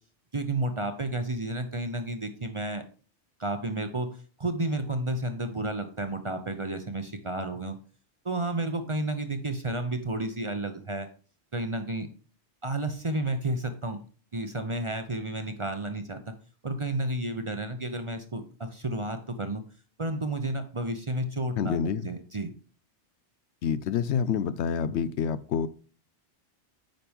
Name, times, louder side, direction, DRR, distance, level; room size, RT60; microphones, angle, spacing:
voice 1, 0.3-2.8 3.4-4.1 4.4-7.8 8.2-11.1 11.5-12.1 12.6-14.0 14.3-16.3 16.6-19.6 20.0-22.5, right 2 dB, 35° right, 0.6 m, -31 dB
voice 2, 21.6-22.0 23.6-25.7, left 7 dB, 75° left, 0.8 m, -27 dB
9.1 x 5.9 x 3.5 m
omnidirectional pair, 1.2 m